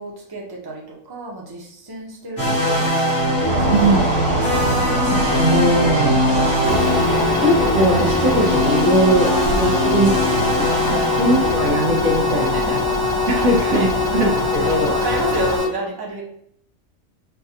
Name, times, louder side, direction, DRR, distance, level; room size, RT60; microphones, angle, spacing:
voice 1, 0.0-4.0 10.8-11.1 12.3-12.8 13.3-14.0 14.6-16.2, right 2 dB, 20° right, -3 dB, 0.8 m, -31 dB
sound 1, 2.4-11.7, equal, 85° left, 2.1 m, -21 dB
sound 2, 3.5-15.6, right 1 dB, 65° right, 1.2 m, -25 dB
voice 2, 3.7-4.0 5.1-6.2 7.3-12.8 13.3-15.0, right 1 dB, 85° right, -2 dB, 1.6 m, -20 dB
sound 3, 6.6-15.6, left 7 dB, 40° left, 0.9 m, -24 dB
5.5 x 2.4 x 2.8 m, 0.71 s
omnidirectional pair, 1.4 m